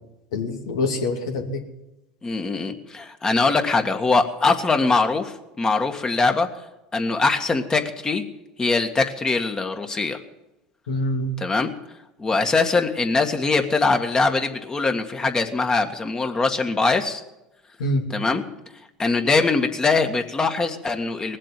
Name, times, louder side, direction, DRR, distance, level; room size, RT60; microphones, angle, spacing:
voice 1, 0.3-1.6 10.9-11.3 17.8-18.0, left 2 dB, 85° left, 3 dB, 2.6 m, -25 dB
voice 2, 2.2-6.5 6.9-8.2 8.6-10.2 11.4-11.7 12.2-17.2 18.1-18.4 19.0-21.4, left 3 dB, 25° left, 6 dB, 1.8 m, -22 dB
19.0 x 7.6 x 9.1 m, 0.95 s
hypercardioid pair, 90°, 3 cm